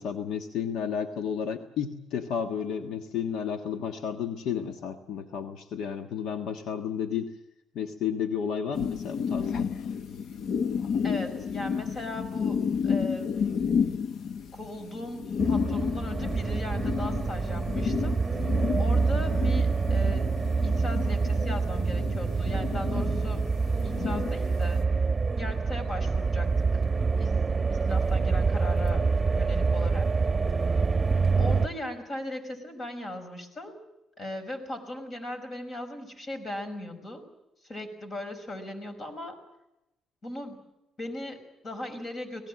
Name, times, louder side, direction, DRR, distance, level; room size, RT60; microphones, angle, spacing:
voice 1, 0.0-7.4 7.7-9.7, left 7 dB, 85° left, 7 dB, 1.4 m, -32 dB
sound 1, 8.7-24.8, left 6 dB, 65° left, 1.0 m, -31 dB
voice 2, 11.0-13.3 14.5-18.5 18.8-20.3 20.6-23.4 23.8-24.8 25.4-26.8 27.2-27.4 27.7-29.1 29.3-30.1 31.4-33.8 34.2-37.3 37.6-39.4 40.2-40.6 41.0-42.5, left 1 dB, 45° left, 7 dB, 5.6 m, -38 dB
sound 2, 15.4-31.7, right 4 dB, 25° right, 1.1 m, -26 dB
25.5 x 19.0 x 7.5 m, 0.90 s
cardioid pair, 90°, 0 cm